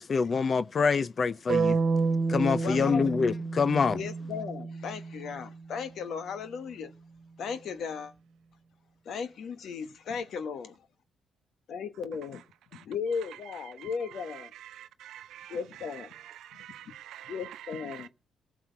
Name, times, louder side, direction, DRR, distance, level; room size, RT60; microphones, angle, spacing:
voice 1, 0.0-1.8 2.3-4.0, left 5 dB, 40° left, 0.6 m, -26 dB
sound 1, 1.5-5.5, right 4 dB, 45° right, 1.5 m, -29 dB
voice 2, 2.4-3.1 3.9-6.9 7.4-8.1 9.0-10.7 11.7-12.4 12.7-14.5 15.5-16.1 17.3-18.1, left 6 dB, 65° left, 1.3 m, -36 dB
voice 3, 12.7-18.1, right 12 dB, 80° right, 0.8 m, -48 dB
18.5 x 6.2 x 4.6 m
cardioid pair, 90°, 0 cm